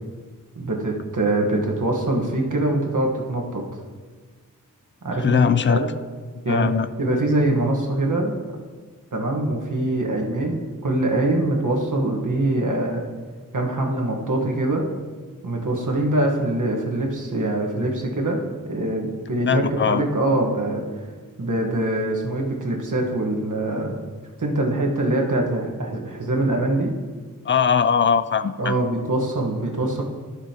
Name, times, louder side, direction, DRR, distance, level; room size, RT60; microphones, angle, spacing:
voice 1, 0.6-3.6 5.0-5.9 6.4-8.6 9.1-13.0 13.5-14.9 15.4-18.4 18.6-20.8 21.4-24.0 24.4-26.9 28.6-30.0, right 1 dB, 65° right, 0 dB, 1.4 m, -23 dB
voice 2, 5.2-5.8 6.5-6.9 19.5-20.0 27.5-28.7, left 7 dB, 35° left, 12 dB, 0.4 m, -20 dB
13.5 x 6.3 x 2.9 m, 1.4 s
wide cardioid pair, 75°, 33 cm